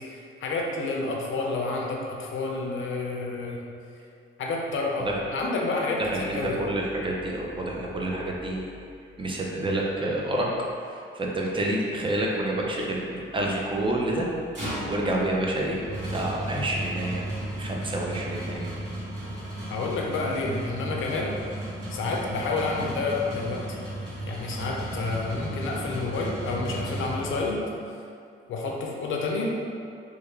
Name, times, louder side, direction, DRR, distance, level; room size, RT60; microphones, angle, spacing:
voice 1, 0.1-3.6 4.4-6.6 19.7-21.4 21.9-23.7 24.3-27.6 28.5-29.5, left 3 dB, 70° left, -1 dB, 0.5 m, -29 dB
voice 2, 6.0-8.7 9.2-10.5 10.9-14.3 14.9-17.2 17.6-18.7, right 1 dB, 25° right, -2 dB, 0.5 m, -28 dB
sound 1, 14.3-27.7, right 1 dB, 60° right, 1.3 m, -34 dB
3.3 x 2.3 x 3.3 m, 2.4 s
cardioid pair, 95°, 21 cm